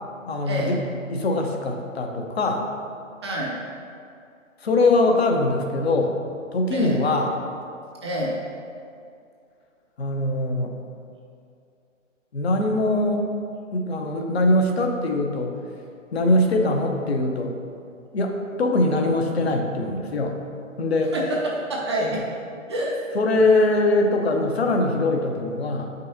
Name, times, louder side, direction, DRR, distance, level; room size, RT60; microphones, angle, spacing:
voice 1, 0.3-0.8 1.1-2.7 4.6-6.2 6.5-7.4 10.0-10.7 12.3-13.3 13.7-15.5 16.1-17.5 18.1-20.4 20.8-21.1 23.1-25.9, left 2 dB, 50° left, 3 dB, 0.9 m, -22 dB
voice 2, 3.2-3.6 6.7-7.0 8.0-8.3 21.1-22.4 22.7-22.9, right 1 dB, 20° right, -3 dB, 0.6 m, -27 dB
8.8 x 5.4 x 2.7 m, 2.4 s
figure-of-eight pair, 130°, 39 cm